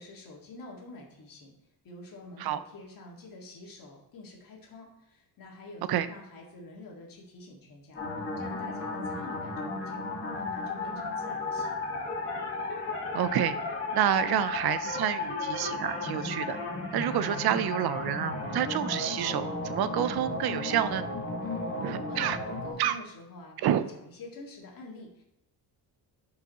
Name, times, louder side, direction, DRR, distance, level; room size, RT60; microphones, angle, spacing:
voice 1, 0.0-1.5 1.8-8.0 8.4-12.1 21.4-25.2, left 2 dB, 60° left, -1 dB, 2.0 m, -47 dB
sound 1, 7.9-22.7, left 3 dB, 35° left, 1.9 m, -34 dB
voice 2, 13.1-13.6 13.9-16.6 16.9-21.0 21.8-22.4 22.8-23.0 23.6-23.8, right 11 dB, 75° right, 13 dB, 0.6 m, -28 dB
11.0 x 4.9 x 3.0 m, 0.90 s
cardioid pair, 130°, 38 cm